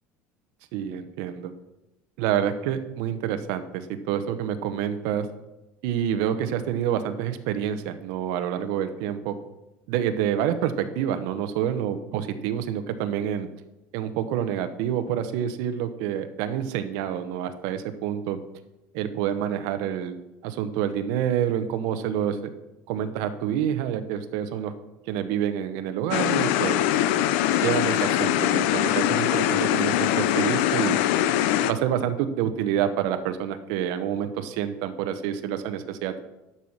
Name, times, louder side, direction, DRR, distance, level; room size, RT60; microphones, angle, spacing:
voice 1, 0.7-1.5 2.2-5.3 5.8-9.3 9.9-13.5 13.9-18.4 18.9-20.1 20.4-22.5 22.9-24.7 25.1-26.8 27.6-30.9 31.6-36.2, right 9 dB, 65° right, 9 dB, 0.9 m, -27 dB
sound 1, 26.1-31.7, left 12 dB, 80° left, 0.6 m, -22 dB
11.5 x 5.6 x 6.5 m, 0.97 s
cardioid pair, 165°, 6 cm